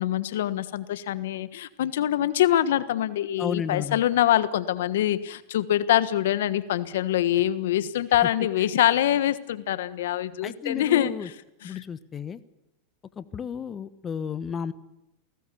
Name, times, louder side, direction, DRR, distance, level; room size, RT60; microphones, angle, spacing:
voice 1, 0.0-11.1 11.6-11.8, left 12 dB, 75° left, 14 dB, 1.3 m, -24 dB
voice 2, 3.4-4.0 10.4-11.3 11.6-12.4 13.2-14.7, left 7 dB, 25° left, 13 dB, 1.3 m, -33 dB
28.5 x 19.0 x 7.0 m, 0.94 s
hypercardioid pair, 115°, 0 cm